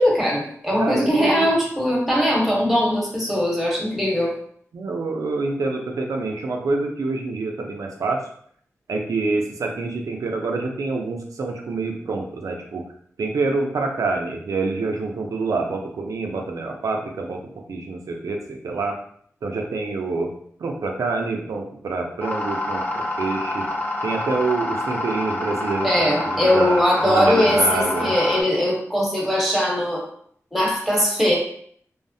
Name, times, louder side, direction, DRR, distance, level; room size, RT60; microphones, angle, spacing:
voice 1, 0.0-4.3 25.8-30.0 30.5-31.4, equal, ahead, -3 dB, 1.0 m, -20 dB
voice 2, 0.8-1.5 4.7-8.3 8.9-12.8 13.2-19.0 19.4-20.3 20.6-23.7 24.0-28.1, right 3 dB, 85° right, 2 dB, 0.4 m, -26 dB
sound 1, 22.2-28.4, left 1 dB, 30° left, 0.6 m, -27 dB
3.1 x 2.0 x 2.6 m, 0.63 s
cardioid pair, 55°, 6 cm